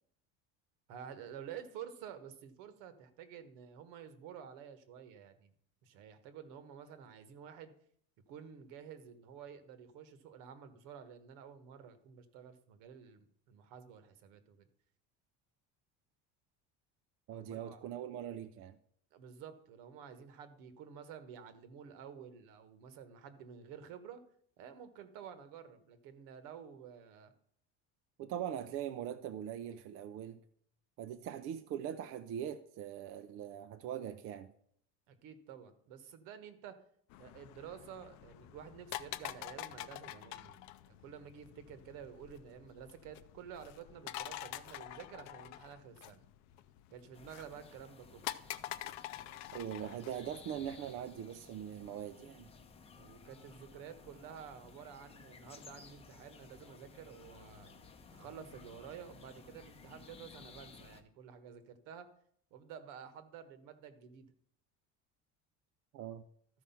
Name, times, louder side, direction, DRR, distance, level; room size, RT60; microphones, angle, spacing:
voice 1, 0.9-5.5 5.8-7.7 8.3-14.7 17.3-17.8 19.1-24.2 24.6-27.3 35.1-36.7 37.2-46.2 46.9-48.3 53.0-57.7 58.1-62.1 62.5-64.3, right 8 dB, 70° right, 1.3 m, -51 dB
voice 2, 17.3-18.8 28.2-30.4 31.0-34.5 49.5-52.5 65.9-66.3, right 10 dB, 45° right, 0.5 m, -41 dB
sound 1, 37.1-50.7, left 14 dB, 60° left, 0.6 m, -47 dB
sound 2, 47.1-61.0, left 5 dB, 20° left, 0.7 m, -57 dB
13.5 x 4.9 x 5.7 m
cardioid pair, 155°, 32 cm